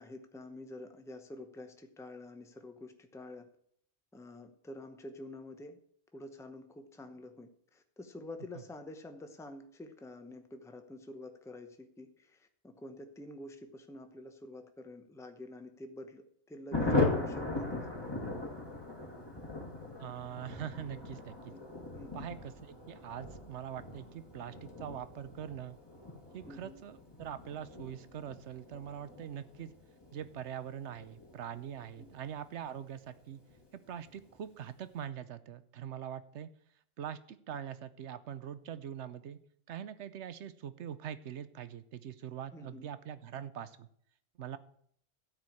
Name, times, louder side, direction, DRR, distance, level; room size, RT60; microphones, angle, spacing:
voice 1, 0.0-3.5 4.1-5.8 6.1-17.9 21.5-21.6 21.9-22.3 26.4-26.8 32.0-32.1 42.5-42.9, left 1 dB, 5° left, 7 dB, 0.8 m, -48 dB
Thunder, 16.7-32.8 33.1-33.2 33.5-33.6 33.9-34.3, left 2 dB, 20° left, 2.1 m, -39 dB
voice 2, 20.0-21.5 22.1-25.8 26.3-29.7 30.1-33.4 33.9-36.5 37.0-39.4 39.7-43.9 44.4-44.6, right 9 dB, 80° right, 13 dB, 1.0 m, -43 dB
13.0 x 4.8 x 8.5 m, 0.65 s
omnidirectional pair, 1.1 m